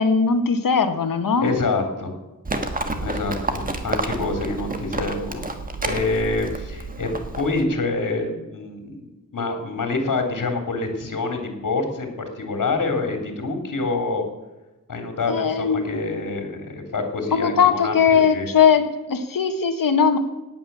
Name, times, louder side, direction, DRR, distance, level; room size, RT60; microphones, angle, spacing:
voice 1, 0.0-1.5 15.3-16.1 17.3-20.2, left 6 dB, 85° left, 8 dB, 1.6 m, -19 dB
voice 2, 1.4-2.1 3.0-5.4 5.8-7.1 7.4-12.1 12.3-14.2 14.9-18.5, left 3 dB, 70° left, 4 dB, 3.3 m, -26 dB
Livestock farm animals working animals, 2.4-7.6, right 2 dB, 25° right, 1.5 m, -29 dB
17.5 x 9.2 x 6.9 m, 1.1 s
wide cardioid pair, 165°, 33 cm